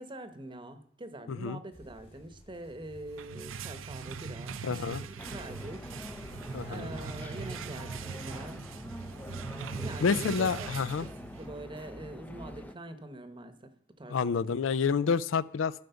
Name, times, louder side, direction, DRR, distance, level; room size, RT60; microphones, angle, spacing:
voice 1, 0.0-8.6 9.8-10.7 11.0-11.1 11.4-13.7 14.0-14.6, right 1 dB, 25° right, 10 dB, 0.9 m, -44 dB
voice 2, 1.3-1.6 4.6-5.0 6.5-6.9 10.0-11.1 14.1-15.7, left 5 dB, 80° left, 17 dB, 0.4 m, -29 dB
sound 1, 1.7-6.8, equal, 30° left, 1.7 m, -55 dB
sound 2, 2.9-11.6, right 5 dB, 85° right, 0.6 m, -41 dB
sound 3, 5.2-12.7, left 1 dB, 10° left, 0.5 m, -44 dB
13.0 x 5.1 x 6.9 m, 0.64 s
head